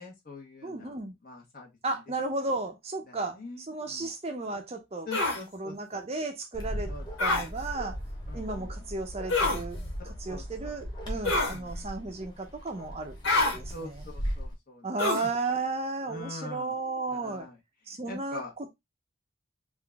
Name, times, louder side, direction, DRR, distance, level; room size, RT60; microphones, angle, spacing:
voice 1, 0.0-0.9 1.2-1.7 3.1-4.1 5.1-5.7 6.9-7.0 7.3-7.5 8.3-8.7 10.0-10.7 11.3-11.7 13.7-14.9 16.1-16.7 17.1-17.5 18.1-18.5, left 3 dB, 45° left, 1.2 m, -43 dB
voice 2, 0.6-1.1 1.8-5.1 5.5-6.9 7.2-8.0 8.3-13.2 13.5-14.0 14.8-17.5 17.9-18.7, right 3 dB, 30° right, 0.6 m, -34 dB
sound 1, 5.1-5.4 7.2-7.5 9.3-9.6 11.2-11.6 13.2-13.6 15.0-15.3, left 2 dB, 70° left, 1.8 m, -26 dB
Bark, 6.5-14.5, equal, 20° left, 1.0 m, -38 dB
3.8 x 2.5 x 3.4 m
head